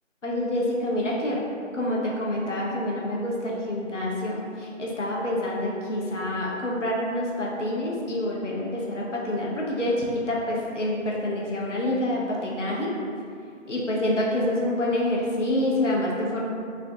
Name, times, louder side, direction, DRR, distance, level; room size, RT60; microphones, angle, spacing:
voice 1, 0.2-1.5 1.7-13.0 13.7-16.5, left 1 dB, 65° left, -4 dB, 0.6 m, -27 dB
2.4 x 2.1 x 2.6 m, 2.3 s
figure-of-eight pair, 175°, 39 cm